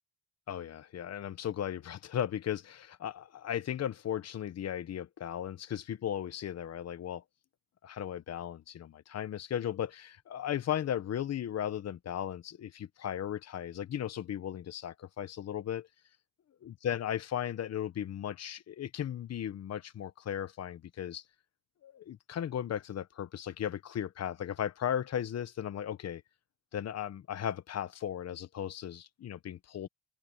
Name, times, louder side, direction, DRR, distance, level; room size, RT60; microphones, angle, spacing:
voice 1, 0.5-7.2 7.8-15.9 16.6-21.2 21.8-26.2 26.7-29.9, left 10 dB, 55° left, 1.2 m, -36 dB
cardioid pair, 90°, 30 cm